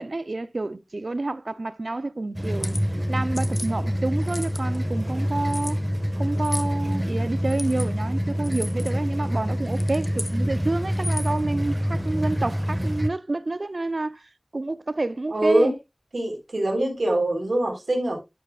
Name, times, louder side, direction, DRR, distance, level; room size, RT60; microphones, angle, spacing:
voice 1, 0.0-2.8 3.1-5.8 6.2-14.2 14.5-15.7, right 2 dB, 70° right, 0.6 m, -29 dB
sound 1, 2.4-2.8 3.3-3.7 4.2-4.8 5.5-5.7 6.4-6.7 7.5-7.9 8.4-8.9 9.7-10.4 10.9-11.4, left 2 dB, 50° left, 1.3 m, -35 dB
sound 2, 2.4-13.1, equal, 20° right, 1.6 m, -26 dB
voice 2, 15.3-15.7 16.1-18.2, right 1 dB, 85° right, 4.1 m, -23 dB
11.5 x 8.2 x 2.4 m
wide cardioid pair, 50°, 0 cm